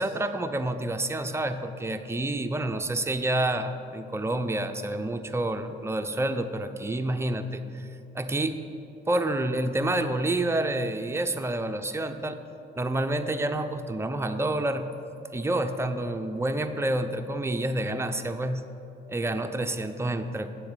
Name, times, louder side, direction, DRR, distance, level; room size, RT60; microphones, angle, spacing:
voice 1, 0.0-7.9 8.1-8.6 9.1-12.4 12.8-14.9 15.3-18.6 19.1-20.5, right 1 dB, 15° right, 7 dB, 0.5 m, -28 dB
8.9 x 6.9 x 5.0 m, 2.7 s
cardioid pair, 90°, 20 cm